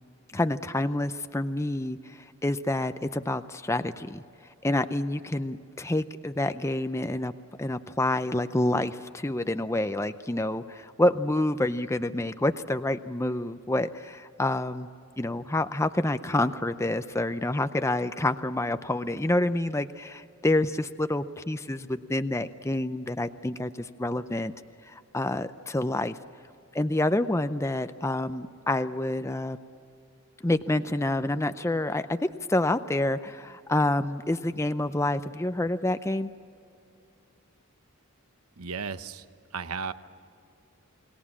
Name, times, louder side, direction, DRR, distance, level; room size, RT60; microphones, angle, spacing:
voice 1, 0.3-4.2 4.6-7.3 7.6-14.9 15.2-24.5 24.8-26.2 26.7-29.6 30.4-36.3, left 1 dB, 10° left, 10 dB, 0.5 m, -28 dB
voice 2, 38.6-39.2 39.5-39.9, right 5 dB, 75° right, 12 dB, 1.0 m, -34 dB
29.0 x 20.5 x 7.4 m, 2.6 s
head